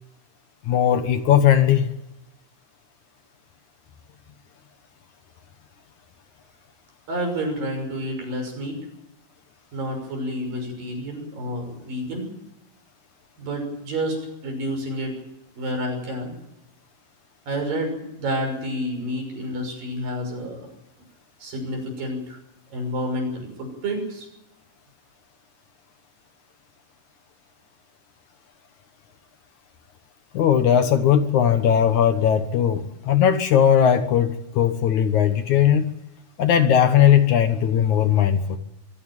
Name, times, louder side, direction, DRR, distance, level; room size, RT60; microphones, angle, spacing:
voice 1, 0.7-1.9 30.3-35.9 36.4-38.6, left 9 dB, 65° left, 2.4 m, -18 dB
voice 2, 7.1-8.8 9.7-12.3 13.4-14.2 14.4-15.1 15.6-16.3 17.5-20.7 21.4-22.4 22.7-24.3, equal, 70° right, 7.9 m, -29 dB
23.5 x 16.0 x 9.0 m
omnidirectional pair, 4.1 m